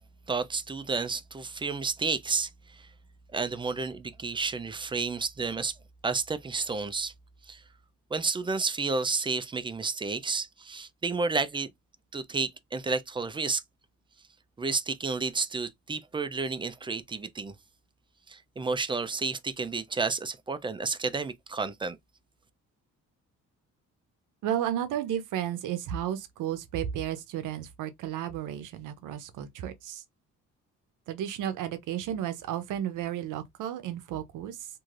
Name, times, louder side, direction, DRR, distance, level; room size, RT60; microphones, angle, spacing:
voice 1, 0.3-2.9 3.3-5.8 6.0-7.1 7.5-7.6 8.1-11.7 12.1-13.6 14.6-17.5 18.3-22.0, right 4 dB, 15° right, 0.4 m, -31 dB
voice 2, 24.4-30.0 31.1-34.7, right 10 dB, 85° right, 0.6 m, -33 dB
3.1 x 2.6 x 2.4 m
cardioid pair, 90°, 30 cm